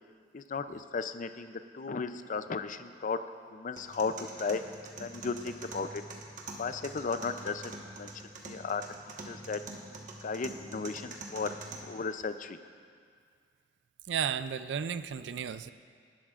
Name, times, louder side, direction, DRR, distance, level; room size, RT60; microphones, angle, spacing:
voice 1, 0.3-3.2 3.5-4.6 5.0-6.0 6.6-8.1 8.5-8.8 9.3-9.6 10.2-11.5 11.8-12.6, left 4 dB, 45° left, 10 dB, 0.5 m, -35 dB
sound 1, 3.8-11.8, right 2 dB, 50° right, 1.3 m, -45 dB
voice 2, 14.1-15.7, right 7 dB, 85° right, 13 dB, 0.4 m, -33 dB
19.0 x 11.5 x 2.5 m, 2.1 s
head